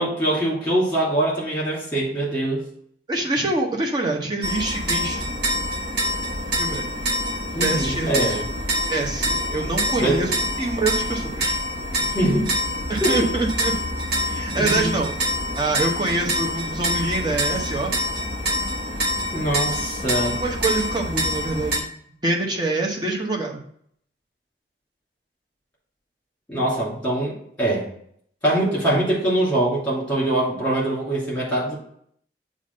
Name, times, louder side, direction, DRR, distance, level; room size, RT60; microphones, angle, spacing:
voice 1, 0.0-2.6 7.5-8.5 10.0-10.2 12.1-12.5 13.0-13.2 14.6-15.0 19.3-20.4 26.5-27.9 28.4-31.8, right 1 dB, 10° left, -6 dB, 2.6 m, -23 dB
voice 2, 3.1-5.3 6.6-6.9 7.5-8.4 8.9-10.3 10.6-11.6 12.9-13.7 14.2-15.1 15.6-17.9 20.2-21.9 22.2-23.6, right 2 dB, 25° right, 0 dB, 0.9 m, -25 dB
sound 1, 4.4-21.8, equal, 65° right, 1.1 m, -26 dB
7.1 x 2.6 x 5.2 m, 0.65 s
head